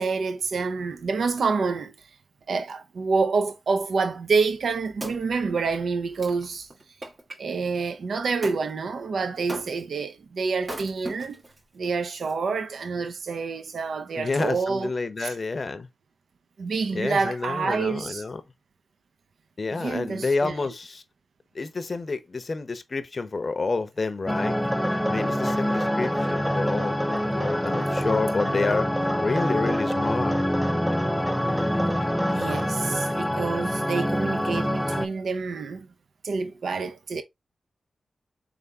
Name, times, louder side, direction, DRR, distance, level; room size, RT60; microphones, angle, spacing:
voice 1, 0.0-1.9 2.5-6.7 7.4-11.4 11.7-14.9 15.2-15.3 16.6-18.2 19.8-20.5 32.3-35.9 36.2-37.2, right 4 dB, 75° right, 0.5 m, -27 dB
Wood, 4.5-7.4 8.4-8.6 9.5-10.0 10.6-11.6 12.2-12.3, right 1 dB, 50° right, 1.4 m, -39 dB
voice 2, 14.2-15.9 16.9-18.4 19.6-21.0 21.5-24.6 25.1-28.9 29.2-30.4, left 3 dB, 50° left, 0.6 m, -29 dB
sound 1, 24.3-35.1, equal, 5° left, 0.5 m, -26 dB
sound 2, 24.6-32.7, equal, 15° right, 1.4 m, -34 dB
3.7 x 3.4 x 2.7 m
supercardioid pair, 40°, 0 cm